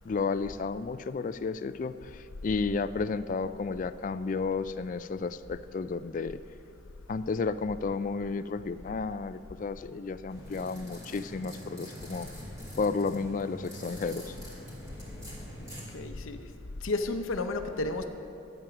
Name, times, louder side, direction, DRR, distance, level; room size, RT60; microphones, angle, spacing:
voice 1, 0.1-6.4 7.1-12.3 12.8-14.3, left 4 dB, 40° left, 13 dB, 0.3 m, -32 dB
sound 1, 10.3-15.8, equal, 20° right, 2.7 m, -45 dB
voice 2, 15.9-16.4 16.8-18.0, left 2 dB, 85° left, 6 dB, 0.7 m, -31 dB
12.0 x 9.1 x 5.9 m, 2.7 s
head